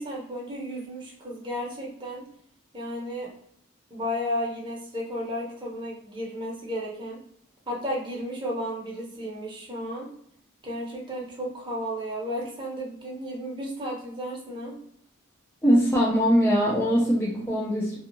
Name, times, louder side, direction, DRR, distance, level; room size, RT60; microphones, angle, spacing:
voice 1, 0.0-2.2 2.7-3.3 3.9-7.2 7.7-10.1 10.6-14.7, equal, 20° right, -4 dB, 0.7 m, -33 dB
voice 2, 15.6-18.0, equal, 10° left, -5 dB, 0.4 m, -22 dB
2.7 x 2.3 x 2.5 m, 0.71 s
head